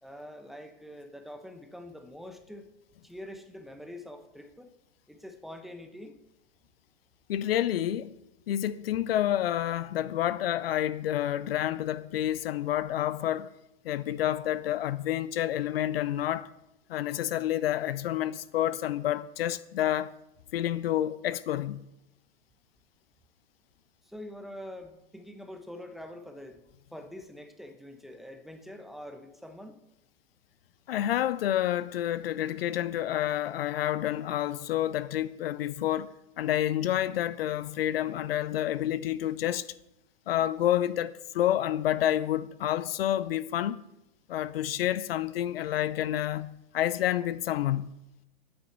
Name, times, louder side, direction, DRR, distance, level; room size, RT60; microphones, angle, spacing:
voice 1, 0.0-2.7 3.0-4.7 5.1-6.2 24.0-29.7, left 1 dB, ahead, 1.2 m, -45 dB
voice 2, 7.3-8.2 8.5-13.5 13.8-16.5 16.9-20.1 20.5-21.9 30.9-39.7 40.3-43.8 44.3-48.0, left 12 dB, 75° left, 0.7 m, -29 dB
8.9 x 6.9 x 8.0 m
hypercardioid pair, 120°, 30 cm